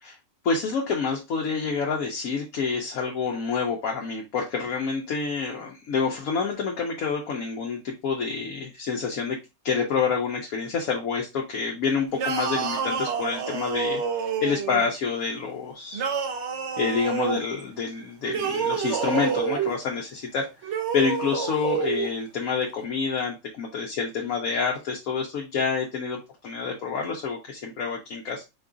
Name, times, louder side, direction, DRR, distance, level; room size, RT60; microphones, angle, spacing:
voice 1, 0.4-9.4 9.6-14.0 14.4-16.1 16.8-20.5 20.9-26.2 26.4-28.5, left 5 dB, 70° left, 0 dB, 1.2 m, -28 dB
sound 1, 12.1-14.9 15.9-17.4 18.2-19.8 20.6-22.1, right 6 dB, 60° right, 0.9 m, -28 dB
4.6 x 2.4 x 3.7 m, 0.25 s
omnidirectional pair, 1.5 m